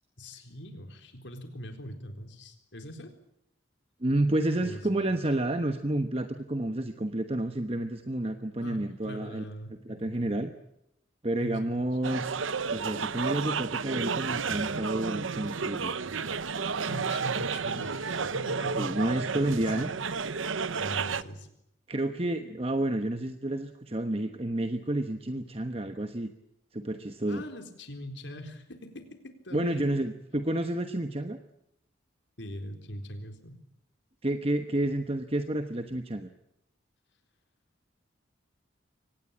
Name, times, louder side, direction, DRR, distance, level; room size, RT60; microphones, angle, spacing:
voice 1, 0.2-3.1 4.6-5.0 8.6-10.4 11.4-12.1 16.9-19.0 19.3-19.4 19.8-20.0 20.8-21.5 27.3-30.0 32.4-33.6, equal, 65° left, 6 dB, 4.1 m, -42 dB
voice 2, 4.0-9.4 9.8-10.5 11.2-12.5 12.7-15.9 18.8-19.9 21.9-26.3 26.7-27.4 29.5-31.4 34.2-36.3, right 1 dB, 30° right, 8 dB, 1.1 m, -30 dB
sound 1, 12.0-21.2, right 5 dB, 85° right, 0.9 m, -32 dB
24.5 x 19.0 x 8.8 m, 0.81 s
head